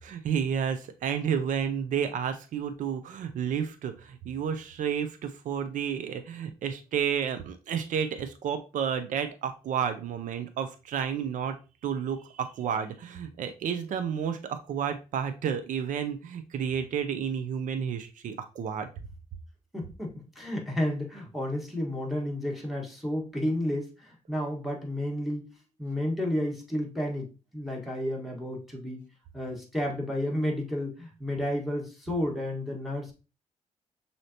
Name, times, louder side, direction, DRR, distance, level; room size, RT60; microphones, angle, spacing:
voice 1, 0.0-11.6 11.8-18.9, right 7 dB, 75° right, 8 dB, 0.5 m, -31 dB
voice 2, 19.7-25.5 25.8-29.1 29.3-33.1, left 1 dB, ahead, -2 dB, 1.5 m, -31 dB
6.3 x 2.8 x 2.8 m, 0.32 s
cardioid pair, 85°, 13 cm